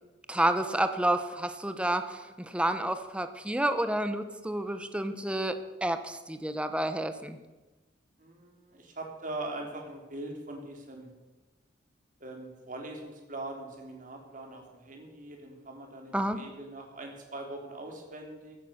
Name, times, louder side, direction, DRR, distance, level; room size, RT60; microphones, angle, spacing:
voice 1, 0.3-7.4 16.1-16.4, right 1 dB, 5° right, 9 dB, 0.8 m, -30 dB
voice 2, 8.2-11.1 12.2-18.6, right 2 dB, 45° right, 2 dB, 3.4 m, -42 dB
15.5 x 11.5 x 6.4 m, 1.2 s
head